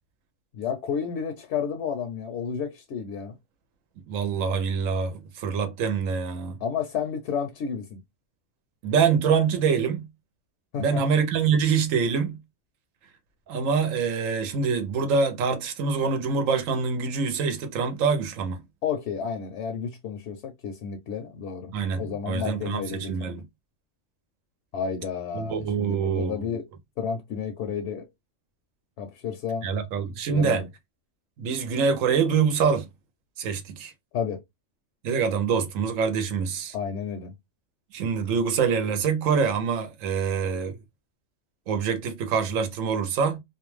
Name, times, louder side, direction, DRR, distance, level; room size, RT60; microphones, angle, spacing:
voice 1, 0.5-3.4 6.6-8.0 10.7-11.0 18.8-23.3 24.7-26.6 27.0-28.1 29.0-29.7 30.3-30.7 34.1-34.4 36.7-37.3, left 6 dB, 70° left, 0.8 m, -31 dB
voice 2, 4.1-6.6 8.8-10.1 10.8-12.4 13.5-18.6 21.7-23.4 25.3-26.6 29.6-30.6 31.4-32.9 33.4-33.9 35.0-36.7 37.9-40.8 41.7-43.4, right 6 dB, 90° right, 1.0 m, -25 dB
2.5 x 2.2 x 3.0 m
omnidirectional pair, 1.3 m